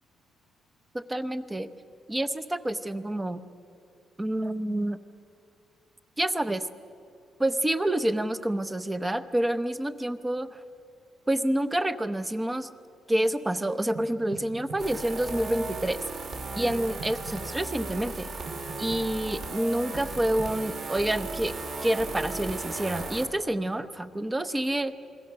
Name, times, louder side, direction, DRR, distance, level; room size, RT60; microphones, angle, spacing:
voice 1, 0.9-1.7 2.1-3.4 4.2-5.0 6.2-6.7 7.4-10.6 11.3-12.7 13.1-16.0 16.6-18.3 18.8-21.5 21.8-24.9, right 1 dB, 10° right, 12 dB, 0.8 m, -28 dB
sound 1, 13.9-14.8 16.7-17.4 18.5-19.0 19.9-20.5, right 3 dB, 90° right, 6.2 m, -42 dB
sound 2, 14.8-23.3, right 3 dB, 45° right, 2.8 m, -36 dB
28.5 x 22.0 x 6.7 m, 2.5 s
cardioid pair, 160°, 0 cm